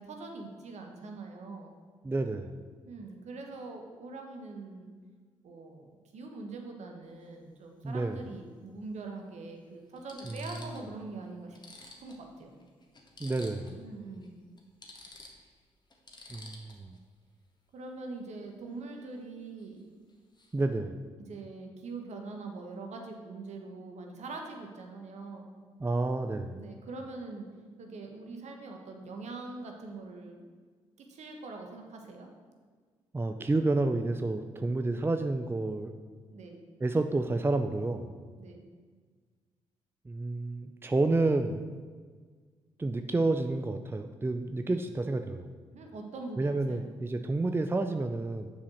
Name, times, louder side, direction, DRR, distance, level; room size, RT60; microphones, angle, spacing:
voice 1, 0.0-1.8 2.8-4.9 5.4-12.6 13.8-14.4 17.7-19.9 21.3-25.6 26.6-27.5 27.8-30.4 31.0-32.3 36.3-36.6 38.4-38.6 45.7-46.9, right 3 dB, 60° right, 3 dB, 1.3 m, -43 dB
voice 2, 2.0-2.6 7.8-8.2 10.2-10.5 13.2-13.8 16.3-17.0 20.5-21.0 25.8-26.6 33.1-35.9 36.8-38.1 40.1-41.7 42.8-45.5 46.4-48.5, right 2 dB, 15° right, 7 dB, 0.5 m, -30 dB
sound 1, 7.0-7.2 8.7-8.8 9.5-9.6 10.0-10.9 11.2-11.3 11.5-13.8 14.1-14.3 14.6-17.0 19.6-19.8 20.1-20.6, left 2 dB, 35° left, 1.6 m, -51 dB
7.0 x 4.9 x 6.3 m, 1.6 s
hypercardioid pair, 40°, 13 cm